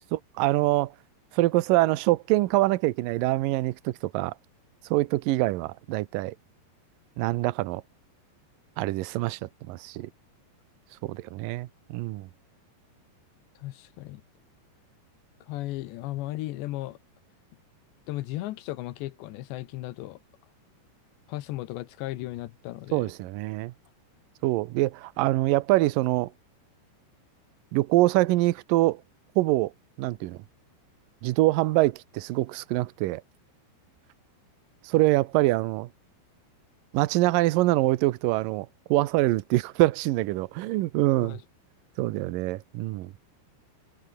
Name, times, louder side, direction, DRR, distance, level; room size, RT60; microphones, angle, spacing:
voice 1, 0.1-0.9 1.3-4.3 4.9-6.4 7.2-7.8 8.8-10.1 11.0-12.3 22.9-23.7 24.4-26.3 27.7-29.0 29.4-29.7 30.0-30.4 31.2-33.2 34.8-35.9 36.9-41.4 42.0-43.1, right 18 dB, 80° right, 2.0 m, -25 dB
voice 2, 13.6-14.2 15.5-17.0 18.1-20.2 21.3-23.1 41.2-41.4, left 16 dB, 85° left, 3.3 m, -35 dB
omnidirectional pair, 4.9 m